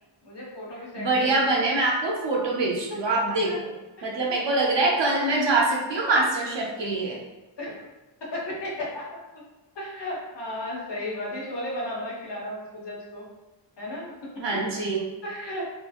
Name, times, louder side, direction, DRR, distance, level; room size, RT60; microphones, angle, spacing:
voice 1, 0.2-1.6 3.4-3.6 4.0-4.9 7.6-7.7 8.2-9.4 9.7-13.3 13.8-14.4 15.2-15.8, left 1 dB, 65° left, -5 dB, 1.1 m, -35 dB
voice 2, 1.0-3.5 4.0-7.2 14.4-15.1, right 2 dB, 70° right, -1 dB, 0.8 m, -24 dB
2.9 x 2.9 x 2.4 m, 1.1 s
wide cardioid pair, 100°, 45 cm